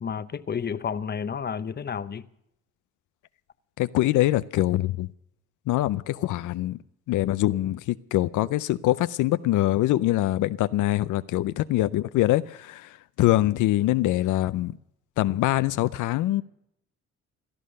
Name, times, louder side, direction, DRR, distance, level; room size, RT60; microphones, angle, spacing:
voice 1, 0.0-2.3, left 7 dB, 35° left, 0.9 m, -31 dB
voice 2, 3.8-5.1 5.7-6.8 7.1-12.9 13.2-14.7 15.2-16.4, left 15 dB, 80° left, 0.6 m, -24 dB
16.5 x 12.5 x 6.6 m
cardioid pair, 90°, 30 cm